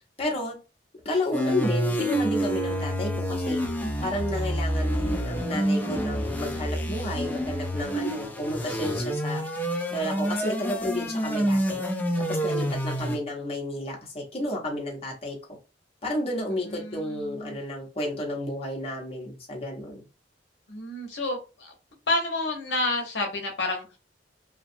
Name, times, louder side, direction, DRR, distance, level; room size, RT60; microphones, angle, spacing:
voice 1, 0.2-0.6 1.0-3.6 4.0-9.4 9.9-11.8 12.2-15.4 16.0-20.1, left 1 dB, 35° left, -2 dB, 0.8 m, -31 dB
sound 1, 1.3-13.2, equal, 10° left, 0.4 m, -28 dB
voice 2, 12.6-12.9 16.6-17.6 20.7-21.7 22.1-24.0, left 2 dB, 75° left, 2 dB, 0.7 m, -30 dB
2.6 x 2.2 x 2.6 m, 0.31 s
head